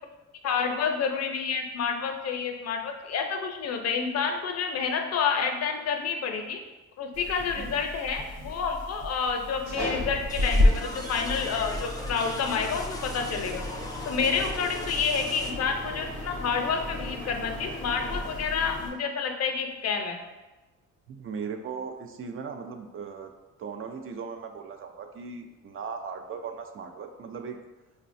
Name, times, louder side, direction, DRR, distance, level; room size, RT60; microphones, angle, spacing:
voice 1, 0.4-6.6 7.0-13.6 14.1-20.2, left 6 dB, 55° left, 4 dB, 0.6 m, -29 dB
sound 1, 7.1-18.9, left 1 dB, 80° right, 1.1 m, -31 dB
voice 2, 7.4-7.8 21.1-23.3 23.6-27.6, right 5 dB, 45° right, 5 dB, 0.5 m, -38 dB
sound 2, 10.3-15.5, left 2 dB, 15° left, 0.4 m, -40 dB
5.4 x 2.2 x 2.5 m, 1.1 s
cardioid pair, 90°, 30 cm